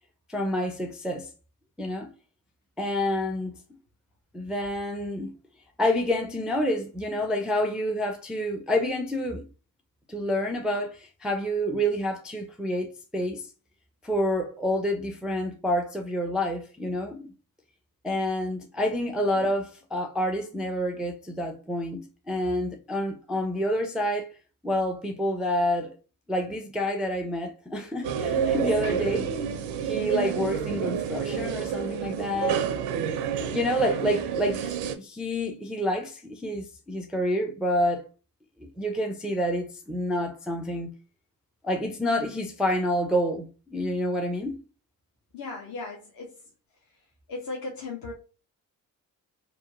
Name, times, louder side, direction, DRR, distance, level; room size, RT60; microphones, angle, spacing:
voice 1, 0.3-1.3 1.8-2.1 2.8-3.6 4.3-5.3 5.8-9.5 10.1-13.4 14.0-17.3 18.0-24.3 24.6-26.0 26.3-29.4 29.8-32.7 33.5-38.0 38.6-40.9 41.6-44.6, equal, ahead, 0.4 m, -28 dB
sound 1, 28.0-35.0, right 7 dB, 70° right, 0.5 m, -29 dB
voice 2, 45.3-46.4 46.8-48.1, left 3 dB, 45° left, 0.7 m, -37 dB
2.8 x 2.2 x 2.3 m
hypercardioid pair, 40°, 47 cm